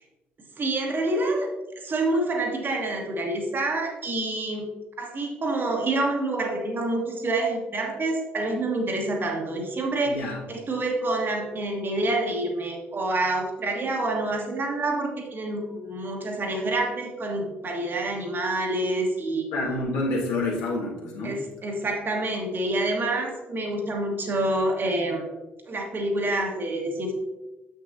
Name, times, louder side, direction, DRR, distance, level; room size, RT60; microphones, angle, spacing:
voice 1, 0.6-1.5 1.8-4.7 5.0-19.4 21.2-25.3 25.7-27.1, right 2 dB, 35° right, 1 dB, 1.3 m, -27 dB
voice 2, 10.0-10.4 19.5-21.4, left 2 dB, 65° left, -3 dB, 1.7 m, -28 dB
7.5 x 6.3 x 2.6 m, 1.1 s
figure-of-eight pair, 50°, 6 cm